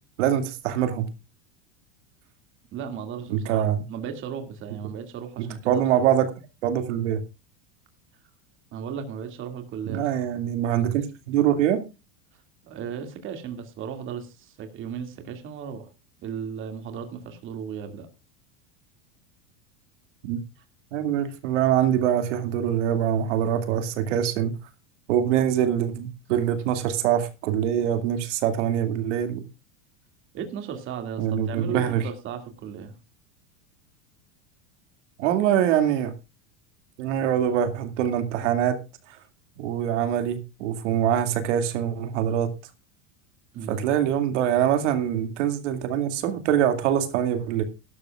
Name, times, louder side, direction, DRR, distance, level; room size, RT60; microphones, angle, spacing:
voice 1, 0.2-1.1 3.3-3.8 5.4-6.3 6.6-7.2 9.9-11.8 20.2-20.4 20.9-24.5 25.1-29.4 31.2-32.0 35.2-36.1 37.0-38.8 39.6-42.5 43.7-47.6, right 10 dB, 75° right, 8 dB, 2.4 m, -24 dB
voice 2, 2.7-6.1 8.7-10.1 12.6-15.9 16.2-18.1 30.3-32.9 43.5-43.9, right 7 dB, 35° right, 6 dB, 2.3 m, -35 dB
18.0 x 12.5 x 2.4 m, 0.28 s
supercardioid pair, 160°, 36 cm